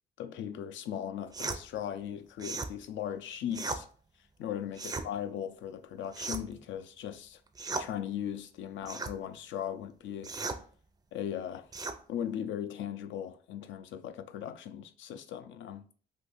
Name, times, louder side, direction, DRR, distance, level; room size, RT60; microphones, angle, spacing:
voice 1, 0.2-3.9 4.4-7.4 7.8-10.3 11.1-11.7 12.1-15.8, left 9 dB, 75° left, 0.4 m, -38 dB
sound 1, 1.3-1.6 2.4-2.7 3.5-3.8 4.7-5.1 6.1-6.6 7.5-7.9 8.8-9.1 10.2-10.6 11.7-12.0, right 3 dB, 20° right, 0.4 m, -36 dB
2.6 x 2.5 x 4.0 m
cardioid pair, 90°, 20 cm